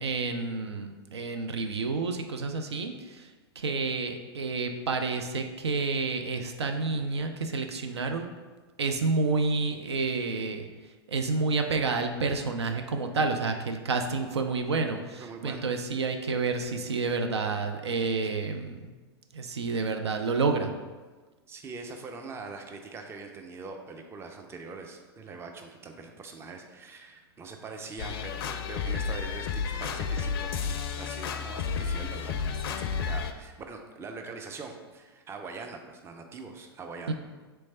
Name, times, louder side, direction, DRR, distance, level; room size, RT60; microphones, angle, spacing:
voice 1, 0.0-3.3 3.6-8.3 8.8-10.7 11.1-18.9 19.3-20.7 37.1-37.2, right 4 dB, 85° right, 5 dB, 0.4 m, -29 dB
voice 2, 15.2-15.7 21.5-37.1, right 4 dB, 20° right, 4 dB, 0.5 m, -43 dB
sound 1, 28.0-33.3, left 6 dB, 60° left, 0.4 m, -32 dB
3.3 x 3.1 x 4.2 m, 1.3 s
hypercardioid pair, 100°, 14 cm